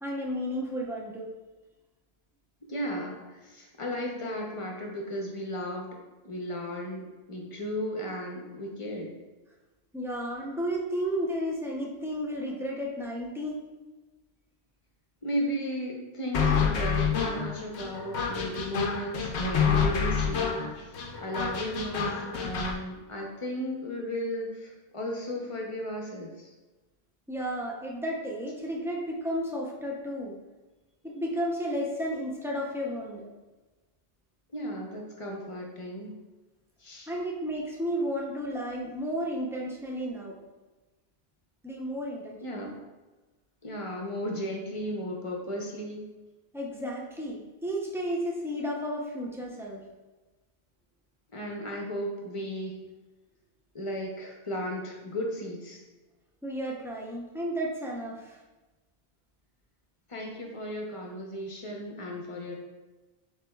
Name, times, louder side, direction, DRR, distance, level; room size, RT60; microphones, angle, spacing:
voice 1, 0.0-1.3 9.9-13.6 27.3-30.3 31.0-33.3 37.1-40.4 41.6-42.7 46.5-49.8 56.4-58.4, equal, 5° right, -3 dB, 0.4 m, -33 dB
voice 2, 2.7-5.9 6.2-9.1 15.2-26.5 34.5-36.1 36.8-37.1 42.4-42.7 43.6-46.0 51.3-52.8 53.7-55.8 60.1-62.6, equal, 35° left, 0 dB, 0.7 m, -35 dB
sound 1, 16.3-22.8, left 6 dB, 85° left, 0.9 m, -28 dB
6.8 x 3.0 x 2.3 m, 1.2 s
omnidirectional pair, 1.1 m